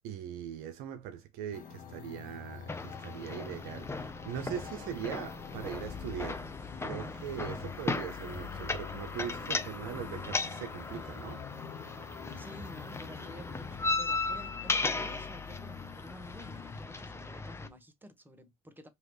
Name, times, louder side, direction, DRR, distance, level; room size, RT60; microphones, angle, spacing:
voice 1, 0.0-6.5 6.8-11.4, right 9 dB, 65° right, 0.9 m, -41 dB
sound 1, 1.5-17.8, left 7 dB, 60° left, 1.4 m, -46 dB
sound 2, 2.7-17.7, left 3 dB, 15° left, 0.8 m, -37 dB
voice 2, 12.3-18.9, equal, 10° right, 1.4 m, -51 dB
4.7 x 3.0 x 3.1 m
hypercardioid pair, 65°, 17 cm